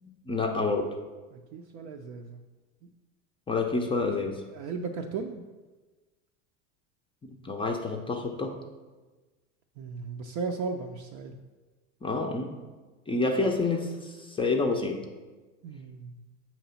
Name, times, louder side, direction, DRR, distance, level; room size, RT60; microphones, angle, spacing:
voice 1, 0.0-0.9 3.5-4.4 7.2-8.5 12.0-12.5 13.1-15.0, left 3 dB, 15° left, 2 dB, 0.5 m, -28 dB
voice 2, 1.3-2.4 4.5-5.4 9.8-11.3 15.6-16.2, right 4 dB, 50° right, 3 dB, 0.5 m, -36 dB
6.5 x 3.0 x 5.6 m, 1.3 s
supercardioid pair, 110°, 39 cm